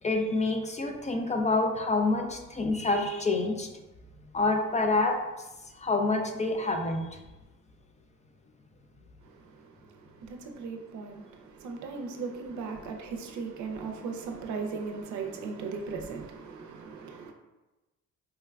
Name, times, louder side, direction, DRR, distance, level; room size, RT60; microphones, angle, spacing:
voice 1, 0.0-3.7 4.3-5.5 5.7-7.2, left 2 dB, 25° left, 0.4 m, -27 dB
voice 2, 9.2-17.3, right 4 dB, 75° right, 0.5 m, -38 dB
4.4 x 2.2 x 2.3 m
cardioid pair, 90°, 30 cm